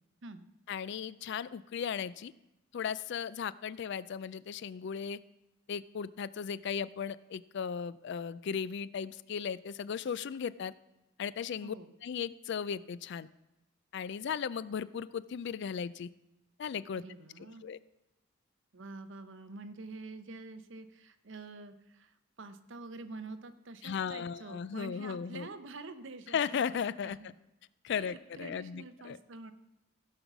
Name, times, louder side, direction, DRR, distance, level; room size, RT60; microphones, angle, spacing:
voice 1, 0.7-2.3 2.7-5.2 5.7-10.7 11.2-11.7 12.0-13.3 13.9-16.1 16.6-17.0 17.6-17.8 23.8-25.5 26.3-27.3 27.8-29.2, left 7 dB, 60° left, 18 dB, 0.3 m, -36 dB
voice 2, 11.6-11.9 16.9-17.7 18.7-26.8 27.0-27.3 27.9-29.5, right 3 dB, 65° right, 10 dB, 0.8 m, -47 dB
16.0 x 5.5 x 6.0 m, 0.93 s
head